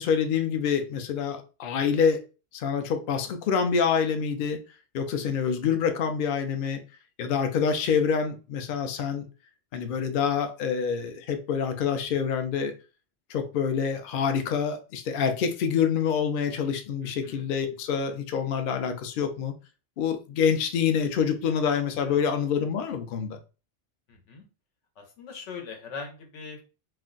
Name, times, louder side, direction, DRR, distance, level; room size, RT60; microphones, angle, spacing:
voice 1, 0.0-2.2 2.5-4.6 4.9-6.8 7.2-9.2 9.7-12.7 13.3-19.5 20.0-23.4, left 7 dB, 60° left, 0.6 m, -26 dB
voice 2, 5.1-5.5 17.0-17.5 22.0-22.2 24.1-24.4 25.0-26.7, left 5 dB, 85° left, 1.1 m, -42 dB
2.5 x 2.1 x 3.7 m
omnidirectional pair, 1.2 m